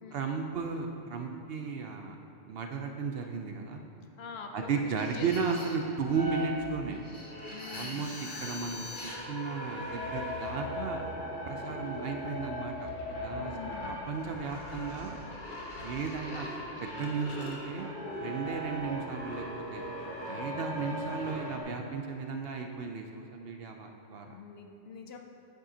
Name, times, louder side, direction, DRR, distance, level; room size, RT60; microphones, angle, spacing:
voice 1, 0.1-2.2 2.5-3.8 4.5-7.0 7.6-8.1 8.4-11.0 11.5-15.2 15.8-16.5 16.8-17.9 18.2-19.4 19.7-19.9 20.3-24.4, right 5 dB, 60° right, 3 dB, 0.7 m, -35 dB
voice 2, 4.2-4.7 5.1-5.6 7.5-8.2 13.3-14.0 24.3-25.2, left 5 dB, 65° left, 3 dB, 0.8 m, -45 dB
sound 1, 5.0-21.6, left 1 dB, 45° left, 1.2 m, -39 dB
9.0 x 7.5 x 2.8 m, 3.0 s
omnidirectional pair, 1.3 m